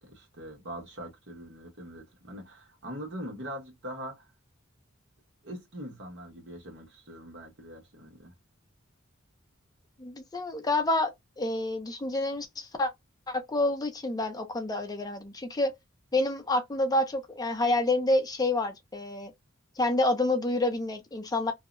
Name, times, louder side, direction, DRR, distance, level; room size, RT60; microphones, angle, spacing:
voice 1, 0.0-4.3 5.4-8.3, equal, 60° right, 1.2 m, -42 dB
voice 2, 10.0-12.9 13.3-15.7 16.1-19.3 19.8-21.5, left 2 dB, 20° left, 0.5 m, -28 dB
2.7 x 2.1 x 2.4 m
head